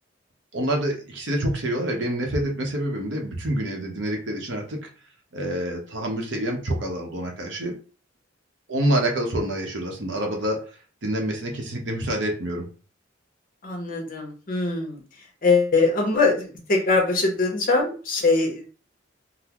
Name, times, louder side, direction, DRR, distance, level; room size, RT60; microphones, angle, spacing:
voice 1, 0.5-4.9 5.3-7.8 8.7-10.6 11.0-12.7, right 1 dB, 65° right, 1 dB, 0.9 m, -27 dB
voice 2, 13.6-15.0 15.4-18.7, left 3 dB, 45° left, 1 dB, 0.9 m, -22 dB
3.9 x 2.1 x 2.9 m, 0.38 s
head